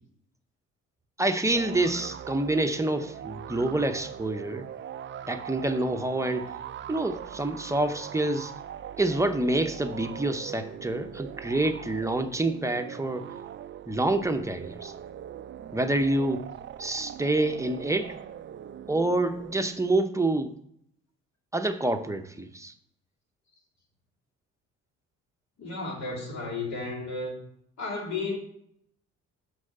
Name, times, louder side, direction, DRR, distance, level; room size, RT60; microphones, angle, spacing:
voice 1, 1.2-4.7 5.3-6.5 6.9-8.5 9.0-13.3 13.9-14.9 15.7-16.5 16.8-18.2 18.9-20.5 21.5-22.7, right 2 dB, 10° right, 7 dB, 0.8 m, -27 dB
sound 1, 1.5-20.0, right 10 dB, 40° right, 0.4 m, -41 dB
voice 2, 25.6-27.4 27.8-28.4, left 3 dB, 60° left, -1 dB, 2.8 m, -33 dB
6.2 x 5.5 x 6.7 m, 0.69 s
cardioid pair, 90°, 30 cm